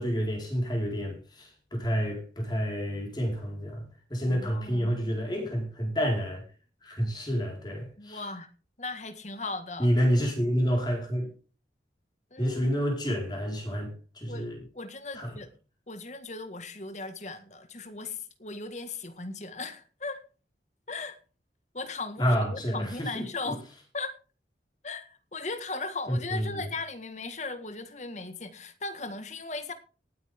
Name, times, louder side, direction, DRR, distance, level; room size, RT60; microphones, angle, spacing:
voice 1, 0.0-3.8 4.1-6.4 6.8-8.2 9.8-11.3 12.4-14.6 15.1-15.3 22.2-23.5 26.1-26.6, equal, 25° left, 4.7 m, -29 dB
voice 2, 4.3-5.0 8.0-8.5 8.8-9.9 12.3-12.7 14.3-14.4 14.7-15.5 15.9-20.2 20.9-21.2 21.7-23.6 23.9-24.2 24.8-29.7, left 3 dB, 40° left, 1.8 m, -37 dB
18.5 x 9.4 x 3.7 m
head